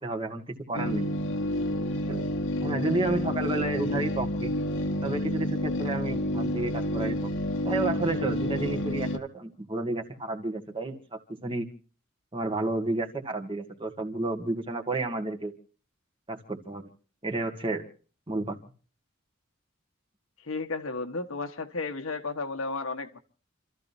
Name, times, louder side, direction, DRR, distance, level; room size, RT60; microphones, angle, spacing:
voice 1, 0.0-1.1 2.1-2.3 2.6-4.5 5.0-7.3 7.6-11.7 12.3-15.5 16.3-16.9 17.2-17.8 18.3-18.6, right 2 dB, 25° right, 3 dB, 1.9 m, -31 dB
sound 1, 0.7-9.2, left 1 dB, 65° left, 1.4 m, -29 dB
voice 2, 20.4-23.2, left 3 dB, 80° left, 5 dB, 1.6 m, -33 dB
29.0 x 14.0 x 2.8 m, 0.39 s
head